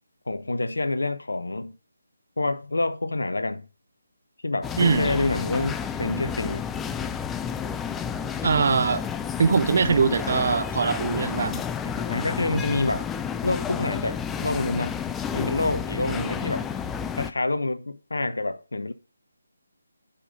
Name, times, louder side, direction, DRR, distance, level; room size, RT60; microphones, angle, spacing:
voice 1, 0.3-1.7 2.4-3.7 4.4-6.7 11.8-13.1 13.4-14.9 15.3-16.7 17.2-18.9, left 2 dB, 70° left, 1.0 m, -27 dB
sound 1, 4.6-17.3, left 7 dB, 10° left, 0.4 m, -31 dB
voice 2, 4.8-5.1 8.4-9.0 9.4-11.6, right 5 dB, 45° right, 1.0 m, -22 dB
9.9 x 5.5 x 5.1 m
figure-of-eight pair, 150°, 0 cm